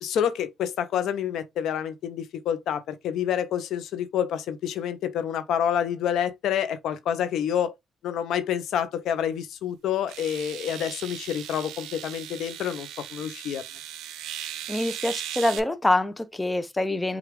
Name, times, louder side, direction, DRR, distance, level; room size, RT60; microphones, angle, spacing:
voice 1, 0.0-7.7 8.0-13.6, left 9 dB, 80° left, 0.7 m, -28 dB
sound 1, 9.2-9.3 10.1-15.6, right 11 dB, 90° right, 0.5 m, -38 dB
voice 2, 14.7-17.2, left 1 dB, 15° left, 0.6 m, -25 dB
4.8 x 2.4 x 3.3 m
cardioid pair, 90°, 0 cm